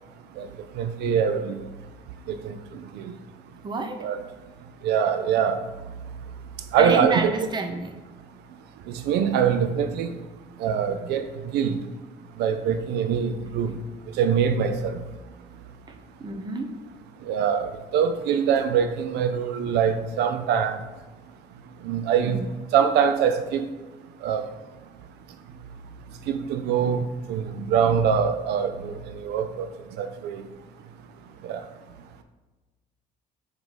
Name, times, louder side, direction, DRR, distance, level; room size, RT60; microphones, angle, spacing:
voice 1, 0.8-1.6 2.4-2.5 3.0-3.1 4.0-4.2 4.8-5.6 6.7-7.3 9.1-10.2 10.6-11.8 12.4-13.7 14.2-15.0 17.3-20.8 21.8-22.4 22.7-23.6 24.2-24.4 26.5-29.7 30.0-30.4 31.4-31.6, right 7 dB, 80° right, 0.4 m, -23 dB
voice 2, 3.6-4.0 6.8-7.9 10.9-11.0 15.9-16.0 16.2-16.8 22.2-22.5, right 3 dB, 25° right, 0.7 m, -29 dB
4.6 x 3.9 x 5.4 m
cardioid pair, 110°, 17 cm